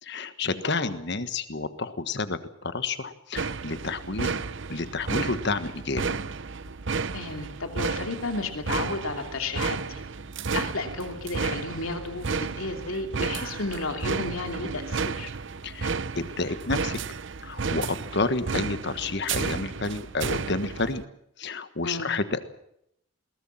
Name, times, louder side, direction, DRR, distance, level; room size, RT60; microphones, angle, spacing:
voice 1, 0.0-4.4 4.7-6.2 10.5-10.6 15.6-17.0 17.4-21.0 21.4-22.4, left 3 dB, 50° left, 11 dB, 1.5 m, -30 dB
voice 2, 0.6-1.0 7.1-10.0 10.5-15.3 21.8-22.1, left 3 dB, 70° left, 5 dB, 2.7 m, -33 dB
sound 1, 3.4-21.0, right 4 dB, 55° right, 0.8 m, -32 dB
21.5 x 19.0 x 7.3 m, 0.75 s
head